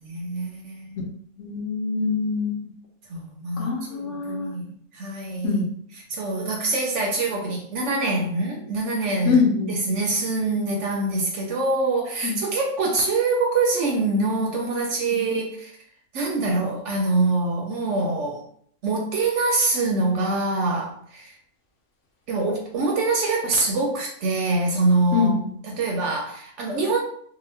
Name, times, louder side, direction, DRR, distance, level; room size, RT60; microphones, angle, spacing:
voice 1, 0.0-1.0 3.1-4.7 4.9-5.7 6.1-9.4 9.7-15.7 16.1-18.4 18.8-21.4 22.3-25.4 25.7-27.0, right 2 dB, 65° right, 0 dB, 0.8 m, -24 dB
voice 2, 1.4-2.7 3.6-4.5 5.4-5.7 9.2-9.7 12.2-12.4 15.1-15.2 25.1-25.5, left 5 dB, 65° left, -1 dB, 0.9 m, -24 dB
2.8 x 2.1 x 3.2 m, 0.63 s
omnidirectional pair, 1.5 m